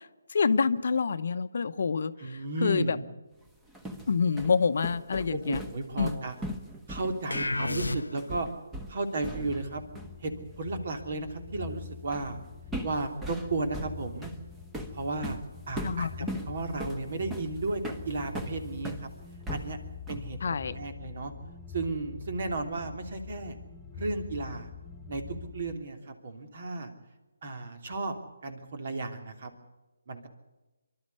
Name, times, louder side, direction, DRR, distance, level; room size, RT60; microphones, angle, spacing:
voice 1, 0.3-2.1 2.6-3.0 4.1-5.6 6.0-6.2 15.8-16.3 20.4-20.7, left 5 dB, 55° left, 12 dB, 0.9 m, -27 dB
voice 2, 2.2-3.0 5.3-6.4 6.9-8.5 8.9-9.8 10.2-10.3 10.6-12.4 12.8-14.3 14.9-15.4 15.7-19.1 19.5-19.8 20.1-21.3 21.7-23.6 23.9-24.7 25.1-26.9 27.4-28.2 28.4-29.5 30.1-30.3, right 2 dB, 50° right, 6 dB, 3.0 m, -34 dB
sound 1, 3.5-9.7 10.0-10.2 12.1-12.4 12.7-19.1 19.5-20.4, right 1 dB, 10° right, 1.3 m, -39 dB
sound 2, 7.3-8.5, left 2 dB, 85° left, 0.7 m, -31 dB
sound 3, 9.5-25.8, left 7 dB, 10° left, 1.8 m, -45 dB
25.0 x 12.0 x 9.6 m, 1.1 s
figure-of-eight pair, 150°, 0 cm